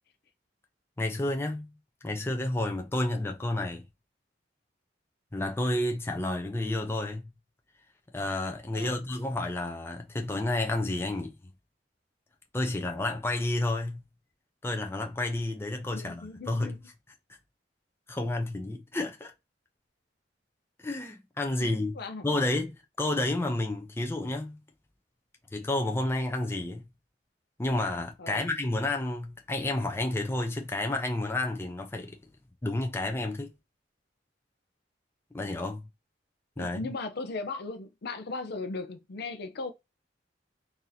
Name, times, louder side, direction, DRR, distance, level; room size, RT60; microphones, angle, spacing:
voice 1, 1.0-1.7 2.0-3.8 5.3-7.3 8.1-11.4 12.5-14.0 14.6-16.8 18.1-19.3 20.8-22.0 22.2-24.6 25.5-26.8 27.6-32.2 32.6-33.5 35.3-35.9 36.6-36.8, left 2 dB, 15° left, 0.5 m, -30 dB
voice 2, 15.9-16.8 21.6-22.3 28.2-28.5 36.6-39.7, left 3 dB, 60° left, 0.5 m, -37 dB
2.8 x 2.6 x 3.9 m
head